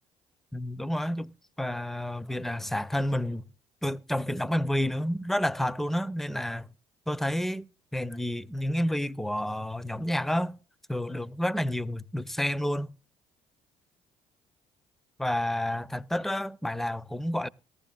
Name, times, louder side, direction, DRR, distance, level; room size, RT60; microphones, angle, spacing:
voice 1, 0.5-1.3 1.6-3.5 3.8-6.7 7.1-10.5 10.9-12.9 15.2-17.5, left 1 dB, ahead, 0.5 m, -30 dB
18.5 x 15.0 x 2.3 m
hypercardioid pair, 60°, 15 cm